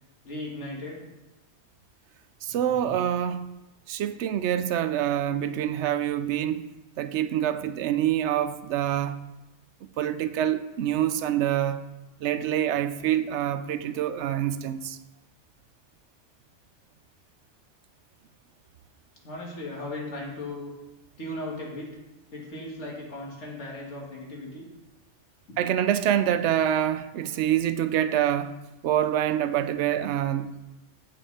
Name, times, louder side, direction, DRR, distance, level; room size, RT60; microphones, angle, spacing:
voice 1, 0.2-1.1 19.2-20.7 21.2-22.0 22.3-24.7, left 1 dB, 75° left, 2.5 m, -37 dB
voice 2, 2.4-3.6 3.9-6.7 7.0-9.2 10.0-11.8 12.2-15.0 25.6-28.6 28.8-30.5, right 11 dB, 75° right, 0.9 m, -26 dB
15.5 x 5.4 x 4.2 m
omnidirectional pair, 1.2 m